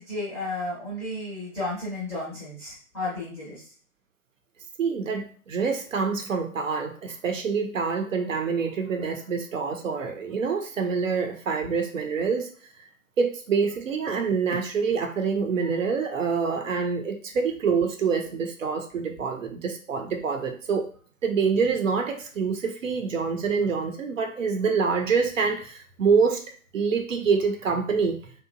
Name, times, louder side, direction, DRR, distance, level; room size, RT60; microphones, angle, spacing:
voice 1, 0.0-3.6, left 2 dB, 5° left, -9 dB, 0.6 m, -33 dB
voice 2, 4.8-12.5 12.8-12.9 13.2-20.8 21.2-26.4 26.7-28.2, right 5 dB, 60° right, 4 dB, 0.7 m, -26 dB
2.8 x 2.3 x 2.5 m, 0.43 s
figure-of-eight pair, 130°, 43 cm